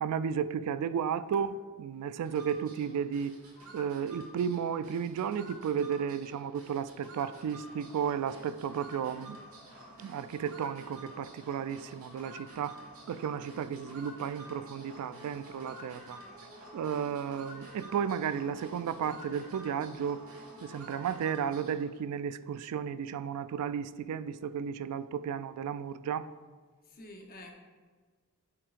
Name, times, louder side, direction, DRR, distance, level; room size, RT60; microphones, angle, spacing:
voice 1, 0.0-3.4 3.7-9.4 10.0-12.8 13.1-16.2 16.7-20.2 20.6-26.3, right 7 dB, 85° right, 0.3 m, -33 dB
sound 1, 2.2-21.9, right 1 dB, 70° right, 1.7 m, -50 dB
voice 2, 26.9-27.5, left 1 dB, 40° left, 0.9 m, -48 dB
11.0 x 4.6 x 2.5 m
head